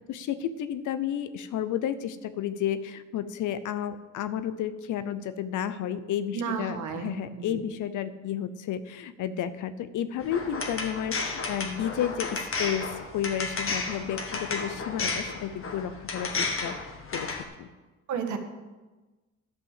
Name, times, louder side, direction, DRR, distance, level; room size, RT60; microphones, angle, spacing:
voice 1, 0.1-16.7 17.1-17.7, left 9 dB, 80° left, 13 dB, 0.8 m, -32 dB
voice 2, 6.3-7.6 18.1-18.4, right 7 dB, 80° right, 6 dB, 1.5 m, -33 dB
sound 1, 10.2-17.4, left 4 dB, 45° left, 1.6 m, -33 dB
11.0 x 5.6 x 7.4 m, 1.2 s
cardioid pair, 90°, 30 cm